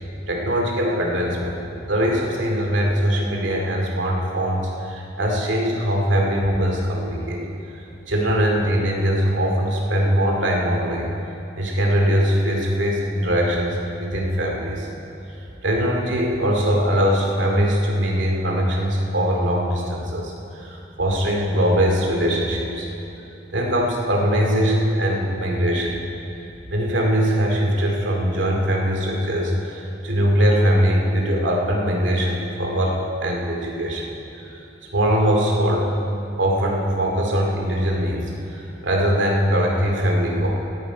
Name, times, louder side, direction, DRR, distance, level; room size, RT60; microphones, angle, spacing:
voice 1, 0.3-1.6 1.9-7.5 8.1-11.1 11.6-14.9 15.6-22.9 23.5-26.0 26.7-34.6 34.9-35.9 36.4-40.5, equal, 80° right, 0 dB, 2.4 m, -21 dB
17.5 x 10.5 x 5.0 m, 3.0 s
head